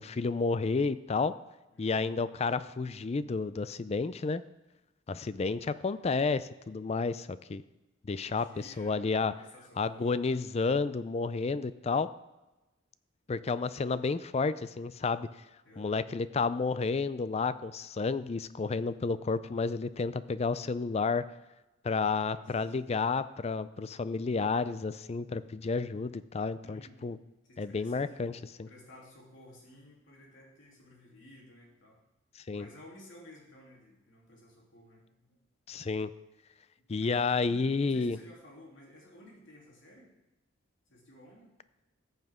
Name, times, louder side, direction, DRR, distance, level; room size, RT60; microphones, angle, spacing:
voice 1, 0.0-1.3 1.8-4.4 5.1-7.6 8.0-9.3 9.8-12.1 13.3-15.3 15.8-21.2 21.8-27.2 27.6-28.3 28.6-28.7 32.5-32.7 35.7-36.1 36.9-38.2, left 4 dB, 35° left, 15 dB, 0.4 m, -31 dB
voice 2, 1.7-2.0 8.2-10.5 15.6-16.0 22.0-22.7 26.6-27.1 27.4-32.0 32.5-35.5 36.8-40.1 40.9-41.5, left 1 dB, 85° left, -2 dB, 3.2 m, -55 dB
14.0 x 8.1 x 3.6 m, 1.1 s
head